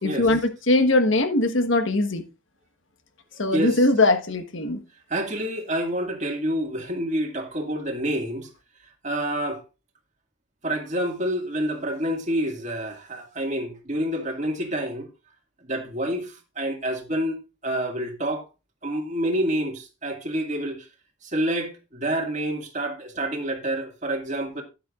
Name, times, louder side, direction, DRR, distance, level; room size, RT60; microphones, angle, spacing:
voice 1, 0.0-2.2 3.4-4.8, left 2 dB, 70° left, 1.4 m, -21 dB
voice 2, 5.1-8.5 9.0-9.6 10.6-15.1 15.7-18.5 18.8-20.8 21.2-24.6, right 1 dB, 35° right, 2.0 m, -28 dB
12.5 x 10.0 x 2.5 m
head